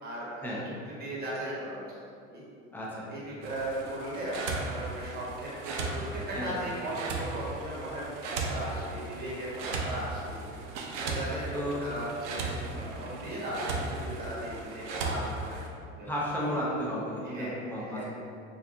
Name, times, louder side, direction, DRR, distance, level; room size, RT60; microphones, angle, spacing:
voice 1, 0.0-1.8 2.3-2.4 3.1-16.1 17.2-18.0, right 1 dB, 25° right, -6 dB, 1.1 m, -37 dB
voice 2, 2.7-3.1 6.3-6.5 11.5-11.9 12.6-12.9 16.0-18.0, equal, 5° left, -6 dB, 0.5 m, -33 dB
sound 1, 3.4-15.7, right 3 dB, 60° right, 0.5 m, -37 dB
3.2 x 2.7 x 2.4 m, 2.4 s
hypercardioid pair, 85°, 40 cm